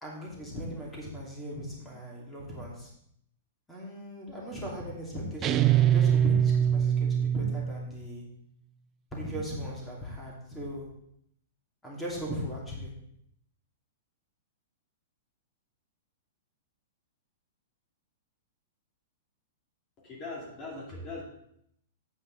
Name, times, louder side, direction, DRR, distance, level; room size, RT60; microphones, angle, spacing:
voice 1, 0.0-2.9 3.7-8.2 9.1-10.9 11.8-12.9, equal, 10° left, -4 dB, 2.5 m, -38 dB
sound 1, 5.4-8.0, right 9 dB, 30° right, 0.4 m, -24 dB
voice 2, 20.0-21.2, left 2 dB, 30° left, -3 dB, 2.4 m, -40 dB
8.7 x 8.2 x 3.9 m, 0.73 s
hypercardioid pair, 135°, 0 cm